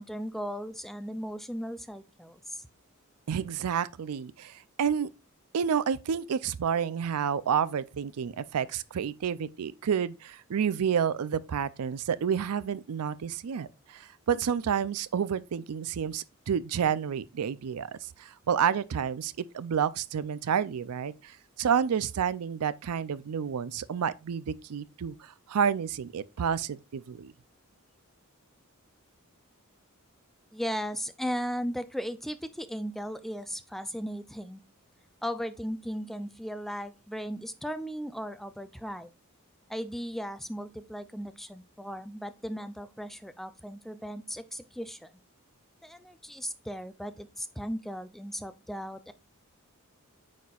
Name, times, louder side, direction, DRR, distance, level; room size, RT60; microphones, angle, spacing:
voice 1, 0.0-2.7 30.5-34.6 35.2-39.1 39.7-45.1 45.8-49.1, equal, ahead, 0.4 m, -36 dB
voice 2, 3.3-5.1 5.5-27.3, right 7 dB, 90° right, 0.4 m, -30 dB
9.2 x 4.3 x 2.4 m
head